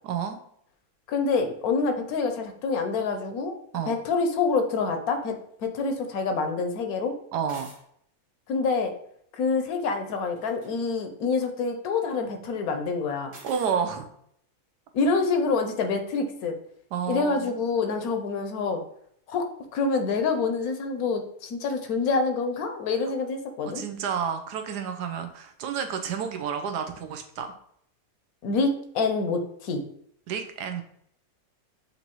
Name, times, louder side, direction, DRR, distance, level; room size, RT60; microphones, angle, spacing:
voice 1, 0.0-0.4 3.7-4.0 7.3-7.7 13.4-14.1 16.9-17.5 23.6-27.5 30.3-30.8, right 7 dB, 85° right, 6 dB, 1.2 m, -30 dB
voice 2, 1.1-3.5 3.9-7.1 8.5-8.9 9.3-13.3 14.9-16.6 17.1-18.8 19.3-23.8 28.4-29.8, left 4 dB, 70° left, 6 dB, 1.1 m, -26 dB
sound 1, 7.4-7.8 10.3-10.7 13.3-13.8, right 3 dB, 55° right, 1.2 m, -47 dB
6.9 x 2.6 x 2.9 m, 0.70 s
omnidirectional pair, 1.7 m